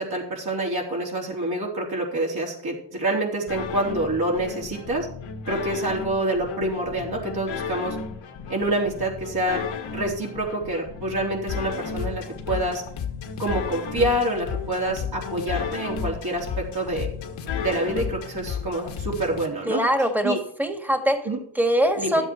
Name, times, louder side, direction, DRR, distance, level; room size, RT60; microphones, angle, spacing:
voice 1, 0.0-5.1 5.5-8.0 8.5-9.6 9.9-12.8 13.4-17.1 17.6-19.8 20.2-20.4 21.2-21.4 22.0-22.2, right 1 dB, 45° right, -2 dB, 3.8 m, -27 dB
sound 1, 3.5-19.5, left 6 dB, 65° left, 1.7 m, -33 dB
voice 2, 19.7-21.3 21.6-22.3, equal, 5° right, 6 dB, 2.0 m, -23 dB
12.0 x 7.8 x 4.6 m, 0.63 s
supercardioid pair, 70°, 50 cm